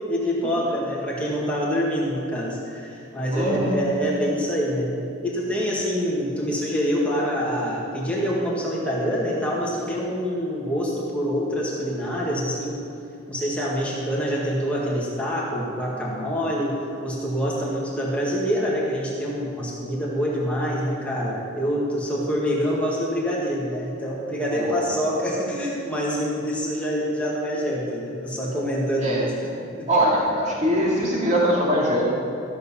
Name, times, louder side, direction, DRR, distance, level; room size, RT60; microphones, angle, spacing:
voice 1, 0.1-4.9 5.2-12.8 13.3-29.3 29.6-29.9, equal, 5° left, -5 dB, 1.8 m, -26 dB
voice 2, 3.3-3.8 24.5-24.9 29.0-29.3 29.9-32.0, equal, 35° right, -4 dB, 2.3 m, -22 dB
13.5 x 6.5 x 7.0 m, 2.8 s
head